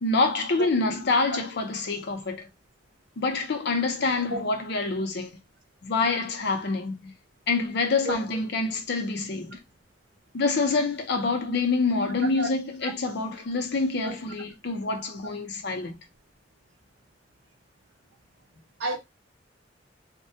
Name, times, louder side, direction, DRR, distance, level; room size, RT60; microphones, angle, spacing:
voice 1, 0.0-2.5 3.2-5.3 5.8-7.1 7.5-9.6 10.3-16.0, left 3 dB, 65° left, 0.6 m, -26 dB
voice 2, 0.6-0.7 4.3-4.4 8.0-8.2 12.4-12.5 12.8-12.9 14.0-14.1 18.8-19.0, right 1 dB, 85° right, 0.7 m, -29 dB
2.1 x 2.1 x 2.7 m
head